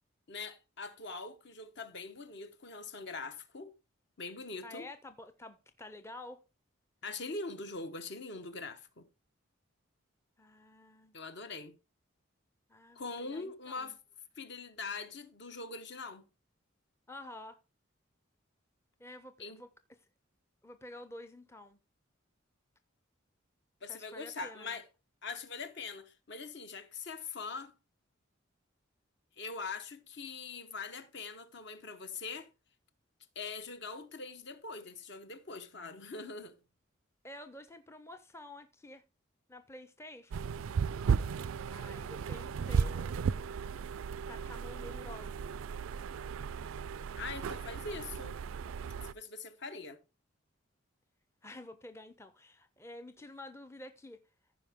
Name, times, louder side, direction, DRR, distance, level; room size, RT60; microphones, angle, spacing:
voice 1, 0.3-3.7 4.2-4.9 7.0-9.1 11.1-11.8 12.9-14.0 14.4-16.2 19.4-19.6 23.8-24.9 25.2-27.7 29.4-32.5 33.3-36.6 47.2-48.4 49.0-50.0, left 4 dB, 55° left, 1.1 m, -42 dB
voice 2, 4.6-6.4 10.4-11.2 12.7-13.9 17.1-17.6 19.0-19.7 20.6-21.8 23.9-24.8 37.2-39.0 39.5-40.5 41.7-43.6 44.3-45.4 51.4-54.2, left 1 dB, 15° left, 0.5 m, -50 dB
sound 1, 40.3-49.1, right 6 dB, 90° right, 0.4 m, -35 dB
15.0 x 5.0 x 3.5 m
head